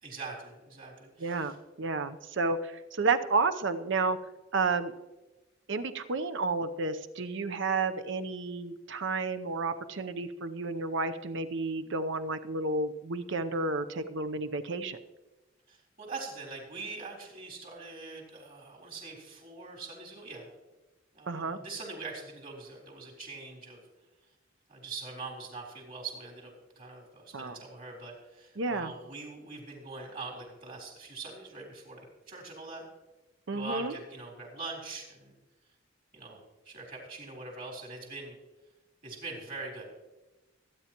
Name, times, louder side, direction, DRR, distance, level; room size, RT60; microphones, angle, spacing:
voice 1, 0.0-1.6 15.7-20.5 21.1-23.8 24.7-32.8 33.5-35.3 36.1-38.4 39.0-40.1, right 3 dB, 45° right, 0 dB, 3.8 m, -43 dB
voice 2, 1.2-4.2 4.5-4.9 5.7-15.0 21.3-21.6 27.3-27.6 28.6-28.9 33.5-33.9, right 3 dB, 65° right, 10 dB, 0.8 m, -31 dB
24.5 x 9.4 x 3.0 m, 1.1 s
head